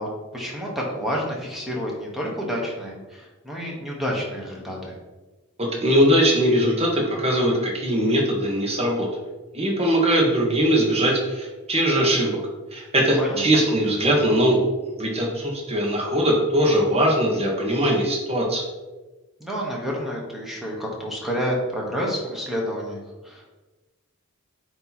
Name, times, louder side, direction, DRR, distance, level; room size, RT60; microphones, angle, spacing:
voice 1, 0.0-4.9 13.2-13.6 19.4-23.4, equal, ahead, -3 dB, 1.1 m, -29 dB
voice 2, 5.6-9.1 9.5-12.4 12.7-14.6 15.0-18.7, equal, 30° right, -2 dB, 1.4 m, -21 dB
8.8 x 2.9 x 4.2 m, 1.2 s
head